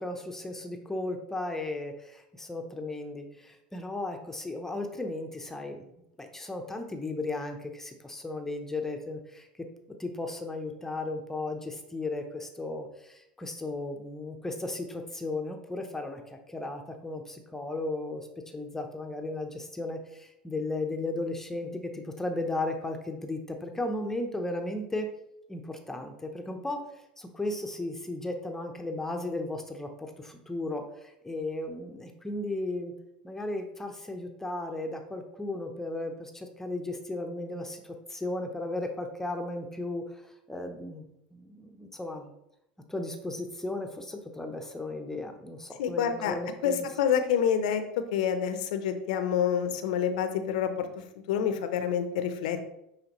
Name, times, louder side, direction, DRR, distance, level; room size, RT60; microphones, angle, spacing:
voice 1, 0.0-5.9 6.2-9.5 10.0-25.1 25.5-32.9 33.2-41.0 41.3-42.3 42.9-46.9, left 2 dB, 10° left, 4 dB, 0.8 m, -35 dB
voice 2, 45.8-46.3 46.6-47.8 48.1-52.6, left 8 dB, 75° left, 9 dB, 0.6 m, -28 dB
9.0 x 3.5 x 3.0 m, 0.83 s
hypercardioid pair, 85°, 4 cm